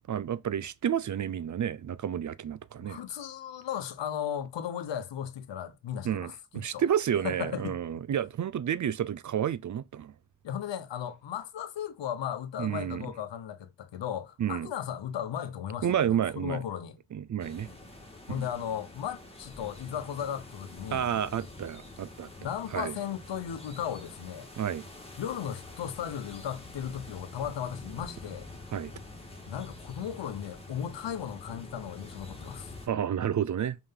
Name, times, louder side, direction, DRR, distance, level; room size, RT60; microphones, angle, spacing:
voice 1, 0.1-3.0 6.0-10.1 12.6-13.1 14.4-14.7 15.8-16.6 17.1-17.7 18.3-18.5 20.9-22.3 22.7-22.9 24.6-24.8 28.7-28.9 32.9-33.8, right 9 dB, 45° right, 0.5 m, -30 dB
voice 2, 2.8-6.8 7.2-7.8 10.4-17.0 18.3-21.1 22.4-24.5 25.2-28.5 29.5-32.7, left 9 dB, 75° left, 1.0 m, -36 dB
sound 1, 17.4-32.9, left 2 dB, 15° left, 2.1 m, -46 dB
5.6 x 5.0 x 5.7 m
cardioid pair, 105°, 44 cm